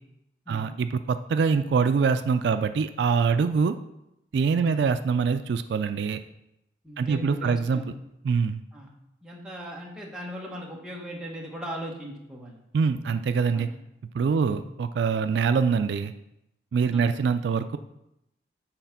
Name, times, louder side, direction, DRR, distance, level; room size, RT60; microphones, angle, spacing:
voice 1, 0.5-3.8 4.3-6.2 7.0-7.8 8.2-8.6 12.7-13.7 14.1-16.1 16.7-17.8, right 5 dB, 70° right, 10 dB, 0.3 m, -24 dB
voice 2, 6.8-7.9 8.7-8.9 9.2-12.6 13.5-13.7 14.4-14.6 16.9-17.1, equal, 5° right, -3 dB, 1.2 m, -38 dB
7.8 x 4.1 x 5.8 m, 0.85 s
head